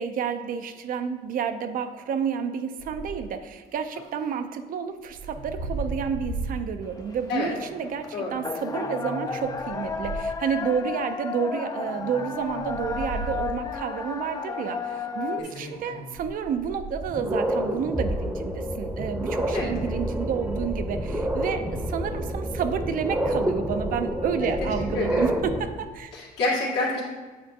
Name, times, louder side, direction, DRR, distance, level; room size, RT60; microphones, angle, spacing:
voice 1, 0.0-26.1, right 7 dB, 55° right, 9 dB, 0.5 m, -30 dB
sound 1, 2.8-3.3 5.0-6.7 7.3-7.4 8.8-10.3 11.8-13.7 15.4-16.9, right 2 dB, 75° right, 1.3 m, -36 dB
sound 2, 6.8-15.4, left 5 dB, 20° left, 0.4 m, -33 dB
sound 3, 16.2-16.3 16.8-25.6, right 1 dB, 10° right, 0.7 m, -28 dB
voice 2, 24.9-25.2 26.1-27.0, left 3 dB, 80° left, -4 dB, 1.9 m, -27 dB
8.6 x 4.3 x 2.7 m, 1.3 s
cardioid pair, 110°, 17 cm